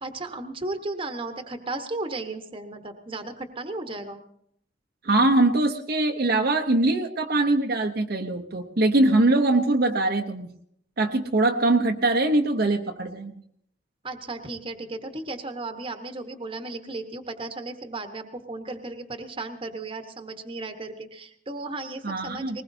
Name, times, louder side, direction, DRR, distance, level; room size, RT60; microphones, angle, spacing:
voice 1, 0.0-4.2 14.0-22.6, right 2 dB, 30° right, 7 dB, 1.2 m, -35 dB
voice 2, 5.0-10.5 11.0-13.4 22.0-22.6, right 2 dB, 55° right, 3 dB, 0.8 m, -22 dB
20.0 x 19.5 x 2.7 m, 0.69 s
head